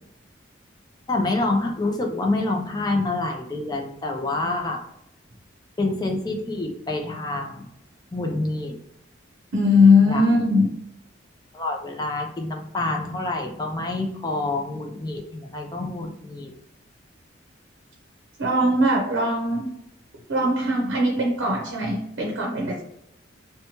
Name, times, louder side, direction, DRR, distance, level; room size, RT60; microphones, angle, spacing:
voice 1, 1.1-4.8 5.8-7.7 8.1-8.8 10.1-10.2 11.5-16.5, left 2 dB, 20° left, 2 dB, 0.4 m, -27 dB
voice 2, 9.5-10.7 18.4-19.7 20.3-22.8, left 2 dB, 70° right, -2 dB, 0.6 m, -20 dB
2.9 x 2.2 x 2.8 m, 0.78 s
head